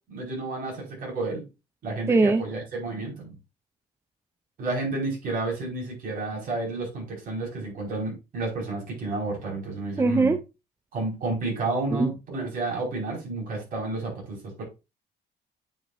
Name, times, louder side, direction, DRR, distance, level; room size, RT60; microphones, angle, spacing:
voice 1, 0.1-1.5 1.8-3.3 4.6-10.3 10.9-14.6, right 3 dB, 55° right, 5.0 m, -31 dB
voice 2, 2.1-2.4 10.0-10.4 12.0-12.1, right 3 dB, 15° right, 0.5 m, -20 dB
8.9 x 5.6 x 2.5 m
cardioid pair, 110°, 17 cm